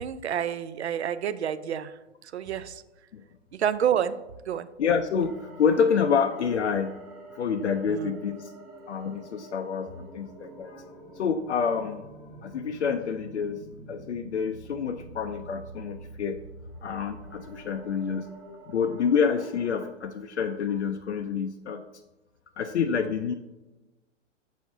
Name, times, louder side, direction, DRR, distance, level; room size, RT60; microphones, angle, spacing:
voice 1, 0.0-2.8 3.5-4.1 4.5-4.7 7.9-8.2, right 9 dB, 65° right, 14 dB, 0.5 m, -29 dB
voice 2, 4.8-7.0 7.3-8.5 8.9-10.9 11.2-12.1 12.4-13.6 13.9-16.4 16.8-18.3 18.7-21.8 22.6-23.3, left 6 dB, 65° left, 6 dB, 0.5 m, -27 dB
sound 1, 5.2-19.9, right 2 dB, ahead, 0.5 m, -46 dB
6.8 x 6.3 x 2.6 m, 1.1 s
figure-of-eight pair, 115°, 37 cm